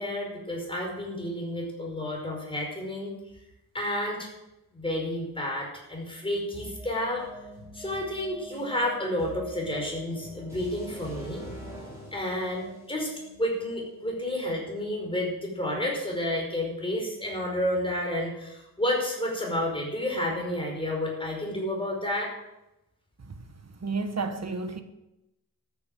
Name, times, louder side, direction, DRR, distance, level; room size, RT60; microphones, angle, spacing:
voice 1, 0.0-3.1 3.7-4.3 4.7-7.2 7.7-11.5 12.1-13.1 13.4-22.3, left 1 dB, 15° left, 5.4 m, -30 dB
sound 1, 6.5-14.4, equal, 5° right, 6.9 m, -44 dB
voice 2, 23.8-24.8, right 4 dB, 45° right, 1.4 m, -31 dB
13.5 x 10.0 x 7.8 m
wide cardioid pair, 130°, 37 cm